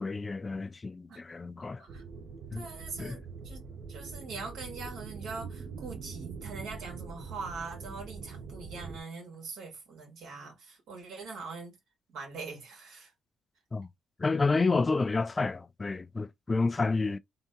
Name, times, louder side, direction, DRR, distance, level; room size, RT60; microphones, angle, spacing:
voice 1, 0.0-1.8 2.5-2.6 3.0-3.2 13.7-13.9 14.2-17.2, left 3 dB, 25° left, 0.3 m, -29 dB
sound 1, 1.9-9.0, right 5 dB, 60° right, 1.0 m, -43 dB
voice 2, 2.5-3.6 3.9-11.8 12.1-13.1, right 4 dB, 80° right, 2.1 m, -42 dB
3.8 x 2.7 x 3.7 m
cardioid pair, 90°, 0 cm